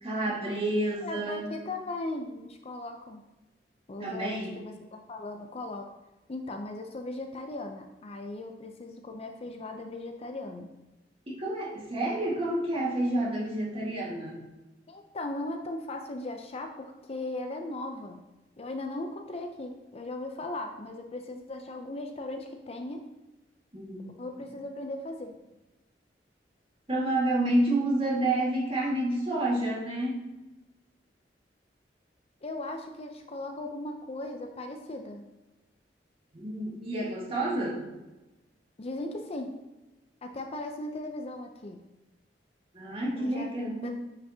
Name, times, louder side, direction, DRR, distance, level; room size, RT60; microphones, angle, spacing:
voice 1, 0.0-1.5 4.0-4.6 11.3-14.4 23.7-24.0 26.9-30.2 36.3-37.9 42.7-43.9, right 1 dB, 35° right, -4 dB, 1.8 m, -29 dB
voice 2, 1.0-3.2 3.9-5.9 6.3-10.7 14.9-18.2 18.6-23.1 24.2-25.3 32.4-35.3 38.8-39.5 40.2-41.8 43.2-43.9, left 2 dB, 35° left, 4 dB, 0.5 m, -38 dB
9.4 x 5.1 x 2.8 m, 1.0 s
head